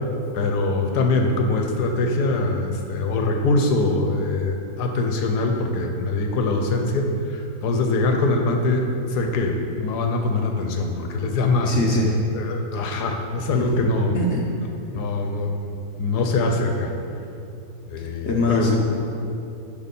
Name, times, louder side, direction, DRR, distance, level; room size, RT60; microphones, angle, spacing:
voice 1, 0.3-11.8 12.3-14.2 14.9-16.9 17.9-18.8, left 2 dB, 75° left, 4 dB, 1.3 m, -23 dB
voice 2, 11.6-12.1 13.5-13.7 14.1-14.5 18.0-18.8, left 2 dB, 50° left, -1 dB, 0.9 m, -22 dB
6.5 x 5.5 x 5.3 m, 2.7 s
omnidirectional pair, 1.8 m